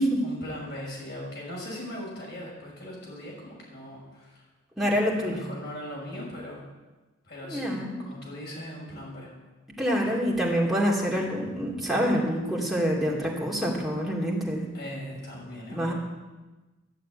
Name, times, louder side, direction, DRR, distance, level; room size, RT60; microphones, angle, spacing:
voice 1, 0.2-4.4 5.2-6.6 7.2-9.3 14.7-15.9, left 1 dB, 50° left, -3 dB, 5.9 m, -39 dB
voice 2, 4.8-5.4 7.5-8.0 9.8-14.7 15.7-15.9, equal, ahead, -4 dB, 2.6 m, -26 dB
12.5 x 7.5 x 8.9 m, 1.2 s
head